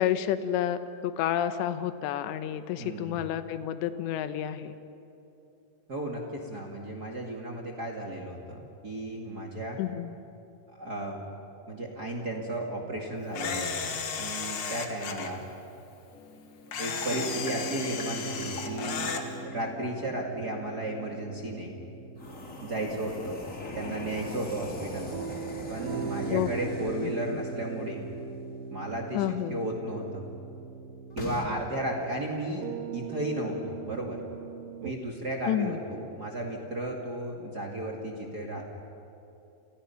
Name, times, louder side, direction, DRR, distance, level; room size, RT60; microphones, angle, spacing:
voice 1, 0.0-4.7 9.8-10.1 26.3-26.7 29.1-29.6 35.5-35.8, left 11 dB, 85° left, 11 dB, 3.2 m, -30 dB
voice 2, 2.8-3.2 5.9-9.8 10.7-11.2 11.7-15.4 16.8-19.1 19.4-21.7 22.6-23.4 23.7-25.2 25.7-28.0 28.7-30.2 31.1-34.2 34.8-38.6, right 1 dB, 35° right, 0 dB, 1.6 m, -34 dB
Camera, 13.3-15.3 16.7-19.2, left 6 dB, 55° left, 2.1 m, -34 dB
sound 1, 16.1-20.9 22.1-27.6 31.1-31.4, left 1 dB, 25° left, 1.8 m, -42 dB
sound 2, 17.1-34.9, right 5 dB, 70° right, 2.3 m, -40 dB
29.5 x 29.5 x 5.8 m, 2.8 s
omnidirectional pair, 5.0 m